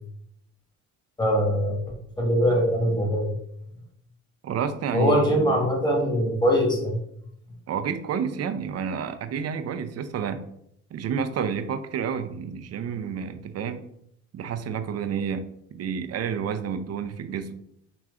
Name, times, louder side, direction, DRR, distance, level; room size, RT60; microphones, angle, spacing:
voice 1, 1.2-1.8 2.2-3.3 4.9-7.0, equal, 10° left, 0 dB, 1.4 m, -22 dB
voice 2, 4.4-5.6 7.7-10.4 10.9-13.8 14.3-15.4 15.7-17.6, right 7 dB, 40° right, 9 dB, 0.5 m, -30 dB
4.8 x 3.1 x 2.4 m, 0.73 s
supercardioid pair, 70°, 39 cm